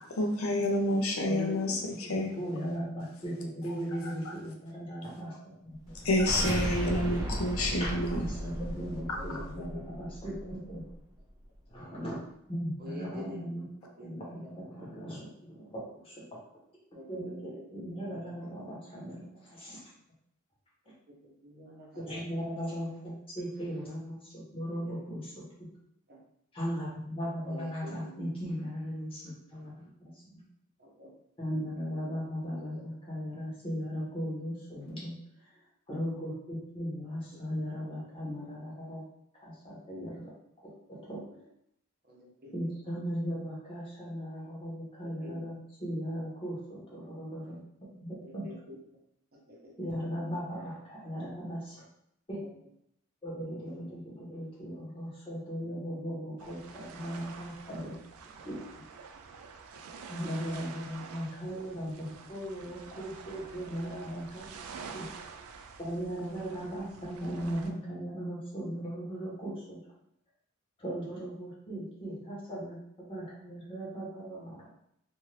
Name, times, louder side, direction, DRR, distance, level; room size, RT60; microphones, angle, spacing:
voice 1, 0.2-2.3 3.7-3.8 4.0-4.3 6.0-8.3, left 1 dB, 75° left, 2 dB, 0.6 m, -29 dB
voice 2, 1.2-6.1 8.1-10.8 11.7-12.2 12.5-13.7 14.0-16.3 17.1-19.8 22.0-25.4 26.5-30.4 31.4-35.5 35.9-39.0 39.3-40.3 40.6-41.5 42.5-48.4 49.8-51.8 52.3-52.4 53.2-57.9 58.4-58.6 60.1-64.5 64.9-65.0 65.8-69.8 70.8-74.6, equal, 25° left, -6 dB, 1.1 m, -38 dB
sound 1, 5.8-11.0, equal, 20° right, 0.4 m, -36 dB
voice 3, 9.2-10.1 12.8-13.4 13.8-14.1 14.4-14.5 16.9-18.5 20.8-20.9 21.2-22.8 24.9-25.2 26.1-26.2 27.4-28.1 30.8-31.1 31.6-31.7 32.0-32.2 32.6-32.8 37.3-37.4 42.0-42.5 45.0-45.4 48.2-48.8 49.3-49.7 53.3-53.9 59.7-60.1 61.5-61.7 72.1-72.2, left 1 dB, 45° right, -2 dB, 0.8 m, -49 dB
sound 2, 56.4-67.7, right 5 dB, 85° right, 0.4 m, -48 dB
2.6 x 2.5 x 3.2 m, 0.74 s
head